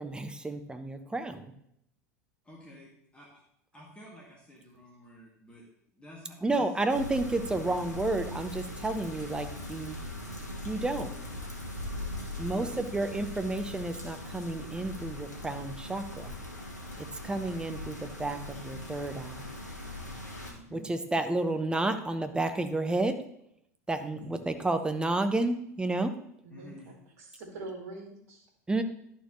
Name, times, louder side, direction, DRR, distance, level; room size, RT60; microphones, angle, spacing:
voice 1, 0.0-1.5 6.4-10.0 10.6-11.1 12.4-16.3 17.0-19.5 20.7-23.2 23.9-26.1 28.7-28.8, right 2 dB, 10° right, 8 dB, 0.7 m, -31 dB
voice 2, 2.4-3.4 3.7-5.6 5.9-6.6 12.4-12.9 20.4-20.9 24.2-24.4 26.5-26.9, equal, 10° left, -3 dB, 1.9 m, -50 dB
sound 1, 6.9-20.5, left 1 dB, 85° left, 1.4 m, -40 dB
voice 3, 26.4-28.5, right 2 dB, 65° right, 1 dB, 2.1 m, -44 dB
11.0 x 4.5 x 3.1 m, 0.74 s
figure-of-eight pair, 80°, 9 cm